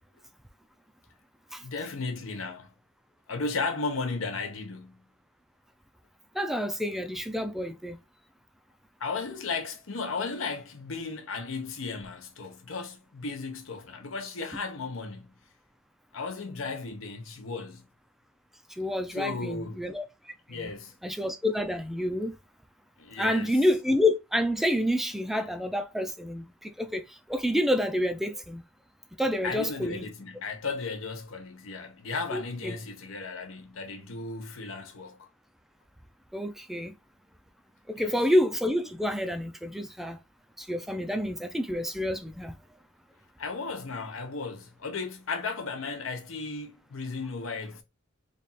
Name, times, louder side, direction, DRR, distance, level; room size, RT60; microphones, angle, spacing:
voice 1, 1.6-2.7 3.3-5.0 9.0-15.3 16.1-17.9 19.1-19.8 20.5-20.9 23.0-23.6 29.4-35.2 38.0-38.1 43.4-47.8, left 4 dB, 80° left, 0.8 m, -35 dB
voice 2, 6.3-8.0 18.8-20.0 20.5-20.7 21.0-22.4 23.2-28.6 29.2-30.0 32.3-32.8 36.3-37.0 37.9-40.2 40.6-42.6, left 1 dB, ahead, 0.3 m, -28 dB
3.3 x 2.3 x 4.1 m
head